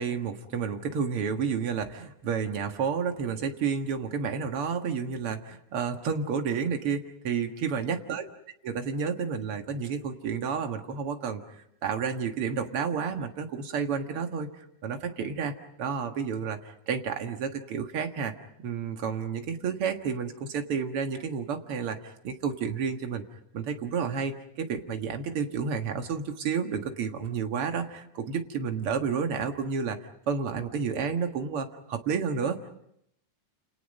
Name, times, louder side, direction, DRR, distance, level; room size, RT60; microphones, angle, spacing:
voice 1, 0.0-8.2 8.6-15.5 15.8-16.6 16.9-18.3 18.6-23.2 23.5-30.0 30.3-32.7, right 6 dB, 50° right, 5 dB, 2.3 m, -31 dB
28.5 x 28.5 x 5.4 m, 0.74 s
omnidirectional pair, 3.6 m